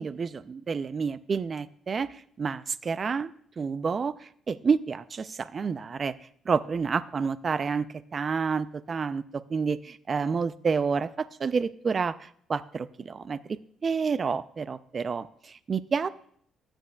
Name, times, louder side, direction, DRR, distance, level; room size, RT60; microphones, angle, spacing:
voice 1, 0.0-6.1 6.5-7.9 8.1-16.1, right 5 dB, 40° right, 15 dB, 0.4 m, -29 dB
14.5 x 9.0 x 2.3 m, 0.62 s
cardioid pair, 90°, 0 cm